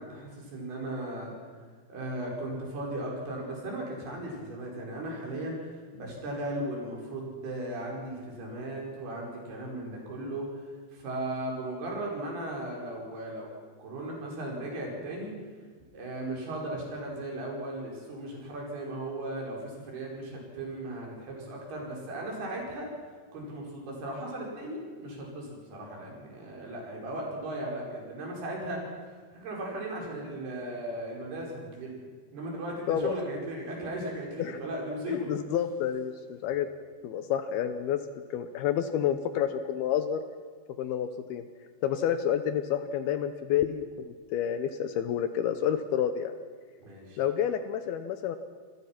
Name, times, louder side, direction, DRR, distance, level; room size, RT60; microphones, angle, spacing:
voice 1, 0.0-1.3 1.9-5.7 5.9-10.5 10.9-13.5 13.8-15.3 15.9-22.9 23.3-31.9 32.3-35.3 46.8-47.2, right 1 dB, 55° right, -1 dB, 6.8 m, -37 dB
voice 2, 35.1-36.7 37.0-38.0 38.3-40.2 40.8-41.4 41.8-46.3 47.2-48.4, left 9 dB, 80° left, 9 dB, 2.3 m, -29 dB
28.0 x 19.5 x 6.0 m, 1.6 s
omnidirectional pair, 5.6 m